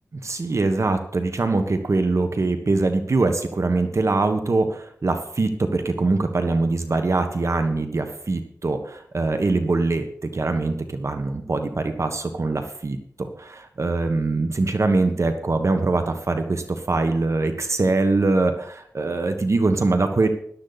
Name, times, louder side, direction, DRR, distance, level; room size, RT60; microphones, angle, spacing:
voice 1, 0.1-20.3, right 3 dB, 55° right, 7 dB, 1.3 m, -23 dB
13.5 x 12.0 x 4.1 m, 0.65 s
wide cardioid pair, 60°, 6 cm